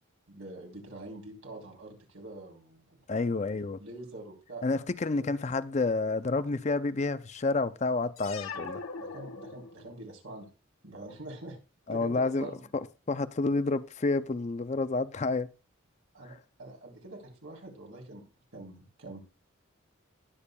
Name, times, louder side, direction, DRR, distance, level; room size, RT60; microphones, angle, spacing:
voice 1, 0.3-3.0 3.5-4.7 5.2-5.3 8.5-8.7 9.0-10.5 10.8-11.6 11.9-12.6 16.1-18.2 18.5-19.2, right 2 dB, 90° right, 3.6 m, -45 dB
voice 2, 3.1-3.8 4.6-8.8 11.9-15.5, left 3 dB, 35° left, 0.4 m, -29 dB
sound 1, 8.2-10.0, left 4 dB, 85° left, 1.2 m, -41 dB
20.0 x 7.0 x 2.3 m
head